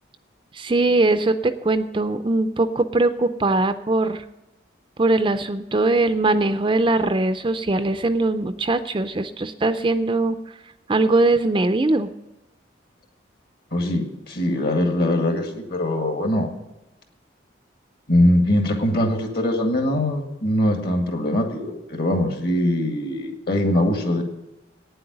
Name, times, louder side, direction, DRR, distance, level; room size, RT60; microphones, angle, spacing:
voice 1, 0.5-4.2 5.0-10.4 10.9-12.1, right 2 dB, 25° right, 10 dB, 0.5 m, -21 dB
voice 2, 13.7-16.5 18.1-24.2, left 1 dB, 55° left, 3 dB, 2.0 m, -22 dB
9.3 x 7.8 x 9.4 m, 0.98 s
head